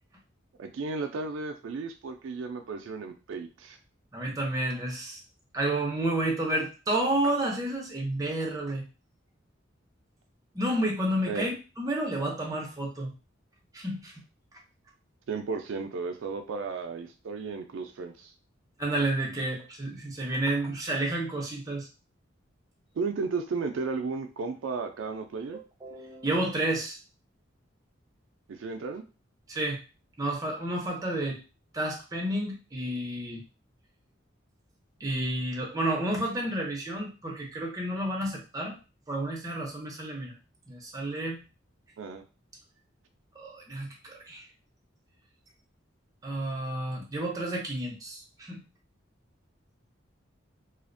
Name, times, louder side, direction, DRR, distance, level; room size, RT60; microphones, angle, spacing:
voice 1, 0.6-3.8 11.3-11.5 15.3-18.3 23.0-25.6 28.5-29.0 42.0-42.2, right 4 dB, 80° right, 6 dB, 0.4 m, -34 dB
voice 2, 4.1-5.2 5.5-8.8 10.5-13.1 13.7-14.2 18.8-21.9 25.8-27.0 29.5-29.8 30.2-31.4 31.7-33.4 35.0-38.8 39.1-40.3 40.7-41.4 43.4-44.4 46.2-48.6, right 1 dB, 20° right, -1 dB, 0.6 m, -30 dB
2.4 x 2.0 x 2.5 m, 0.31 s
head